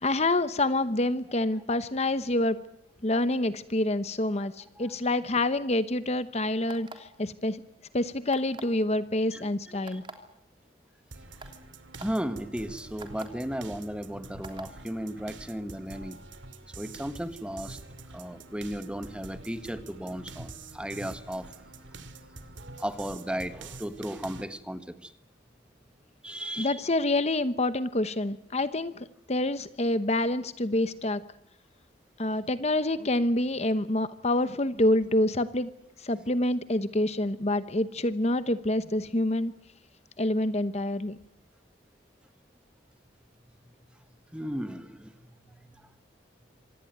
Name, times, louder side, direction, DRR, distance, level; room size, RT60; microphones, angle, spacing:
voice 1, 0.0-2.6 3.0-7.6 7.9-10.0 26.6-31.2 32.2-35.7 36.0-39.5 40.2-41.2, left 1 dB, 35° left, 13 dB, 1.0 m, -27 dB
sound 1, 6.7-7.2 8.3-8.8 9.9-10.1 10.9-11.0 11.4-11.5 11.9-12.1 13.0-13.3 14.4-14.7, right 3 dB, 25° right, 3.3 m, -43 dB
voice 2, 9.3-10.0 12.0-16.2 16.8-17.8 18.1-21.5 22.8-25.1 26.2-26.8 44.3-45.9, equal, 5° right, 11 dB, 1.4 m, -35 dB
sound 2, 11.1-24.4, right 3 dB, 85° right, 2.3 m, -46 dB
26.0 x 18.5 x 9.3 m, 0.76 s
head